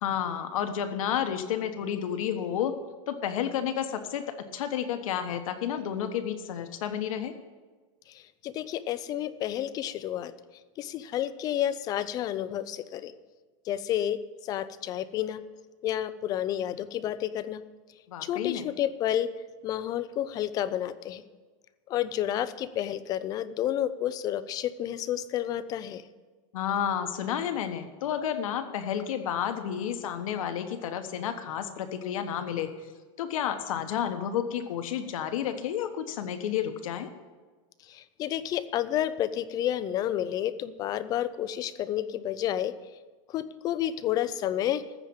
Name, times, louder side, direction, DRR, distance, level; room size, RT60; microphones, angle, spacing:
voice 1, 0.0-2.7 3.1-4.2 4.5-7.3 18.1-18.6 26.5-32.7 33.2-37.1, left 9 dB, 75° left, 8 dB, 1.3 m, -31 dB
voice 2, 8.1-10.3 10.8-13.1 13.7-15.4 15.8-17.6 18.2-19.3 19.6-21.3 21.9-26.0 37.8-42.8 43.3-44.8, left 11 dB, 20° left, 14 dB, 0.4 m, -30 dB
14.5 x 5.1 x 8.7 m, 1.3 s
supercardioid pair, 160°, 18 cm